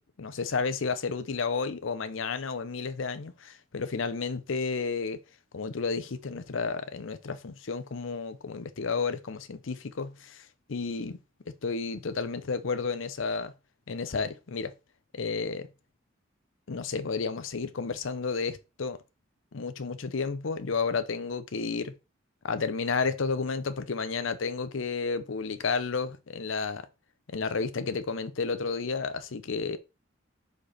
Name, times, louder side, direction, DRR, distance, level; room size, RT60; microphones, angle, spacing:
voice 1, 0.2-5.2 5.5-11.2 11.5-13.5 13.9-14.7 15.1-15.7 16.7-19.0 19.5-21.9 22.4-26.9 27.3-29.8, left 4 dB, 75° left, 0.7 m, -32 dB
5.1 x 4.2 x 5.7 m
head